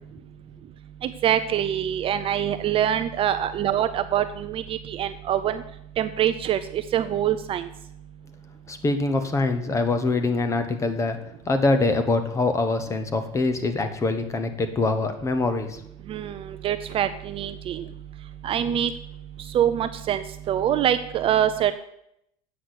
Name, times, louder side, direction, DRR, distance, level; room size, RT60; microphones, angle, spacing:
voice 1, 1.0-5.6 6.0-7.7 16.1-17.9 18.4-18.9 19.5-21.7, right 10 dB, 35° right, 10 dB, 0.5 m, -24 dB
voice 2, 8.7-11.2 11.5-15.8, left 3 dB, 20° left, 8 dB, 1.0 m, -24 dB
8.1 x 6.2 x 7.8 m, 0.77 s
cardioid pair, 145°, 16 cm